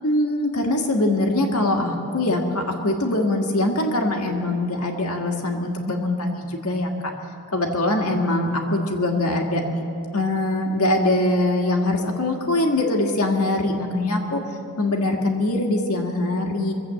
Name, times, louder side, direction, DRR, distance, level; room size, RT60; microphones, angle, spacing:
voice 1, 0.0-6.9 7.5-9.6 10.1-14.4 14.8-16.7, left 1 dB, 75° left, 1 dB, 1.8 m, -22 dB
23.0 x 8.0 x 7.5 m, 2.8 s
head